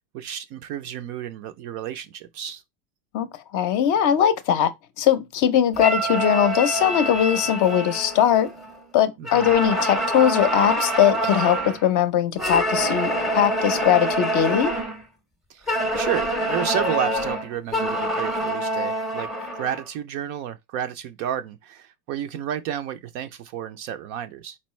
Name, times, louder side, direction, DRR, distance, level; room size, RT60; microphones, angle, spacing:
voice 1, 0.1-2.6 9.2-9.5 15.5-24.6, right 10 dB, 40° right, 0.4 m, -31 dB
voice 2, 3.1-4.7 5.0-8.5 8.9-14.7, left 10 dB, 40° left, 0.6 m, -20 dB
sound 1, 5.8-8.8 9.2-11.8 12.4-15.0 15.7-19.9, equal, ahead, 0.6 m, -26 dB
4.3 x 4.0 x 3.1 m
supercardioid pair, 130°, 48 cm